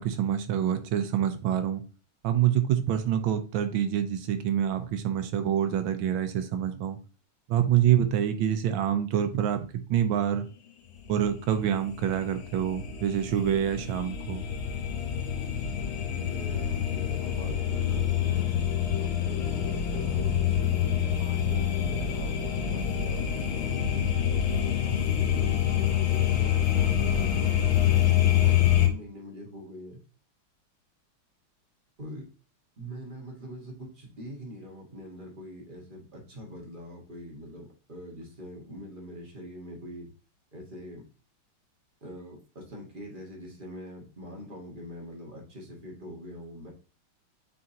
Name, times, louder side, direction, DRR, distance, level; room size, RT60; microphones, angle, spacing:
voice 1, 0.0-1.8 2.2-7.0 7.5-9.6 9.9-10.5 11.1-14.4, right 10 dB, 75° right, 8 dB, 1.5 m, -26 dB
sound 1, 11.0-28.9, left 10 dB, 75° left, 1.7 m, -26 dB
voice 2, 16.1-18.6 19.0-24.2 24.8-27.6 28.2-30.0 32.0-32.3 32.8-40.1 40.5-41.0 42.0-46.7, equal, 25° right, -1 dB, 1.7 m, -43 dB
8.9 x 3.7 x 2.8 m, 0.37 s
omnidirectional pair, 2.2 m